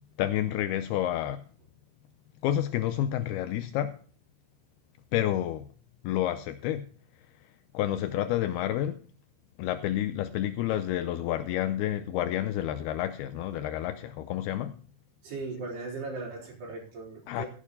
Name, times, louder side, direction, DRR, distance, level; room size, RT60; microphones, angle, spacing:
voice 1, 0.2-1.4 2.4-4.0 5.1-5.7 6.0-6.9 7.7-9.0 9.6-14.7 17.3-17.5, left 12 dB, 85° left, 2.2 m, -29 dB
voice 2, 15.2-17.5, right 3 dB, 60° right, 5.8 m, -38 dB
16.0 x 9.1 x 4.0 m
omnidirectional pair, 5.2 m